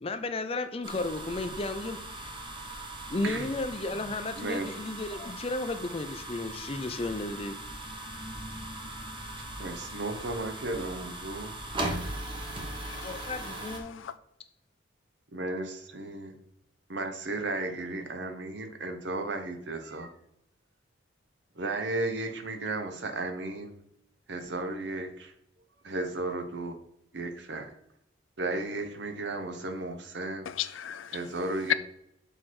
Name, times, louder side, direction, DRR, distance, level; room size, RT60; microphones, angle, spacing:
voice 1, 0.0-2.3 3.1-7.6 13.0-14.0, left 2 dB, 30° left, 0.5 m, -34 dB
sound 1, 0.8-13.8, right 1 dB, 25° right, 1.0 m, -39 dB
voice 2, 4.4-4.7 9.4-11.5 15.3-16.3 16.9-20.1 21.5-23.7 24.3-25.3 25.8-26.8 27.1-27.7 28.4-30.5 31.1-31.7, right 2 dB, 65° right, 0.9 m, -34 dB
voice 3, 12.8-14.1 30.5-31.2 31.7-31.8, left 11 dB, 90° left, 0.4 m, -34 dB
6.6 x 4.5 x 4.3 m
head